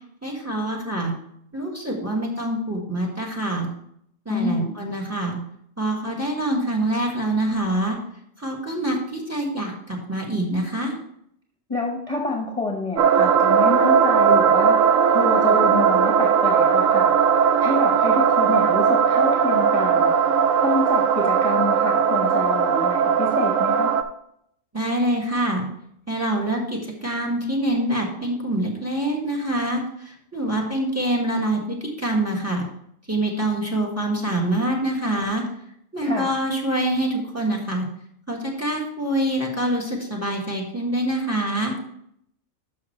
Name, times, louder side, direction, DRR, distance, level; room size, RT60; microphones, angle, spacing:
voice 1, 0.2-1.1 1.5-3.7 4.3-5.4 5.8-8.0 8.4-10.9 24.7-25.7 26.1-32.6 33.1-35.4 35.9-37.9 38.3-41.7, right 1 dB, 10° right, 0 dB, 1.8 m, -25 dB
voice 2, 4.3-4.7 11.7-14.8 15.1-17.1 17.6-20.1 20.6-23.9 36.0-36.4, left 3 dB, 30° left, -1 dB, 1.2 m, -27 dB
sound 1, 13.0-24.0, right 7 dB, 85° right, 1.0 m, -18 dB
11.0 x 6.2 x 3.2 m, 0.72 s
omnidirectional pair, 1.3 m